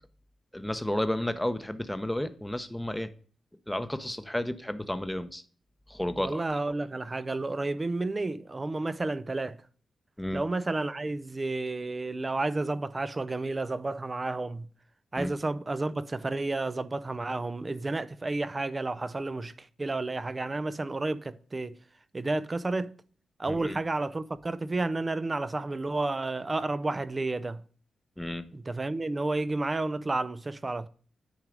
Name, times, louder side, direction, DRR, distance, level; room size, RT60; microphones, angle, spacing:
voice 1, 0.5-3.1 3.7-5.4 5.9-6.4 10.2-10.4 15.2-15.3 23.5-23.8 28.2-28.4, left 1 dB, 5° left, 0.8 m, -32 dB
voice 2, 6.2-9.6 10.3-14.7 15.1-21.8 22.1-22.9 23.4-27.6 28.5-30.9, right 2 dB, 25° right, 0.6 m, -31 dB
9.2 x 4.6 x 5.2 m
cardioid pair, 85°, 0 cm